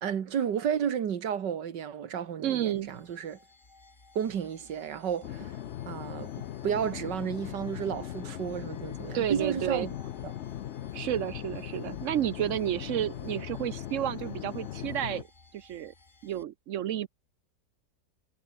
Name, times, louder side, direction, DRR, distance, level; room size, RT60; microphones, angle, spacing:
voice 1, 0.0-3.4 4.2-5.5 5.9-6.3 6.6-9.9 10.2-10.3, right 8 dB, 85° right, 2.1 m, -32 dB
voice 2, 2.4-2.9 9.1-9.9 10.9-15.3 15.5-15.9 16.2-17.1, right 11 dB, 70° right, 0.7 m, -31 dB
sound 1, 2.7-16.4, left 3 dB, 30° left, 2.5 m, -56 dB
sound 2, 5.2-15.2, left 11 dB, 65° left, 0.7 m, -39 dB
omnidirectional pair, 1.8 m